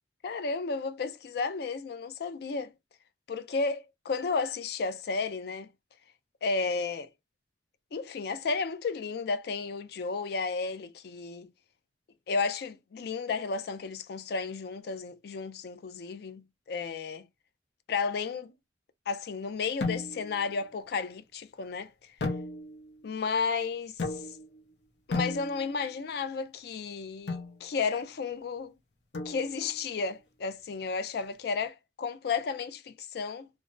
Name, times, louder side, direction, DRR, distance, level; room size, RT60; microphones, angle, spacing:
voice 1, 0.2-2.7 3.3-5.7 6.4-7.1 7.9-11.5 12.3-17.3 17.9-18.5 19.1-22.1 23.0-24.2 25.1-28.7 29.3-33.5, left 4 dB, 60° left, 0.4 m, -33 dB
sound 1, 19.8-20.4 22.2-22.9 24.0-24.6 25.1-25.9 27.3-27.6 29.1-29.8, left 3 dB, 80° left, 0.7 m, -34 dB
3.3 x 2.1 x 2.5 m
head